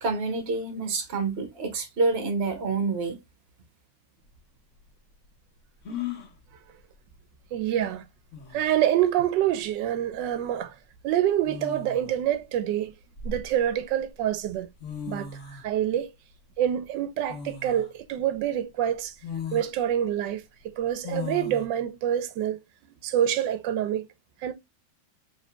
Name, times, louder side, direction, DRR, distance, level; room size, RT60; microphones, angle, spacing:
voice 1, 0.0-3.2, right 3 dB, 40° right, 1.2 m, -27 dB
sound 1, 4.2-4.3 5.8-6.3 7.9-8.0 8.3-8.8 10.1-10.3 11.4-12.2 12.8-13.9 14.5-14.6 14.8-15.7 17.3-17.9 18.4-18.5 19.2-19.7 21.0-21.7, left 6 dB, 50° left, 1.2 m, -37 dB
voice 2, 7.5-8.0 8.5-10.8 11.0-12.9 13.2-14.7 15.1-16.1 16.6-19.1 19.5-22.6 23.0-24.1 24.4-24.5, right 11 dB, 85° right, 1.2 m, -26 dB
4.9 x 3.3 x 2.2 m
omnidirectional pair, 1.9 m